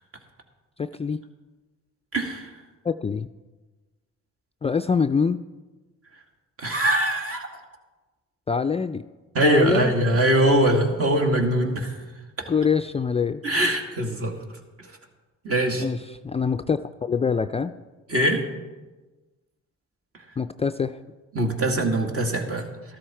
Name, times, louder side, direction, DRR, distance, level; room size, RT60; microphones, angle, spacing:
voice 1, 0.8-1.2 2.8-3.3 4.6-5.4 8.5-9.0 9.4-9.9 12.5-13.4 15.8-16.0 16.2-17.7 20.4-21.0, left 5 dB, 20° left, 9 dB, 0.3 m, -24 dB
voice 2, 2.1-2.5 6.6-7.6 9.3-12.0 12.4-12.5 13.4-14.3 14.8-14.9 15.4-15.9 18.1-18.4 21.3-22.7, right 1 dB, 50° right, 2 dB, 2.3 m, -22 dB
13.0 x 13.0 x 4.4 m, 1.2 s
cardioid pair, 90°, 30 cm